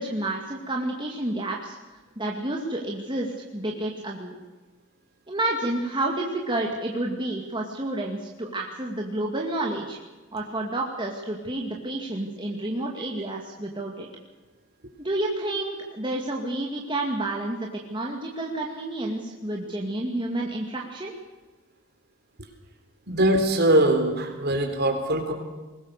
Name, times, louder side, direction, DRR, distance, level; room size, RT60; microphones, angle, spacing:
voice 1, 0.0-1.8 2.2-4.3 5.3-10.0 10.3-14.1 15.0-21.1, right 1 dB, 20° right, -1 dB, 2.3 m, -30 dB
voice 2, 23.1-25.3, right 1 dB, 50° right, 4 dB, 3.9 m, -22 dB
22.0 x 19.5 x 6.7 m, 1.2 s
head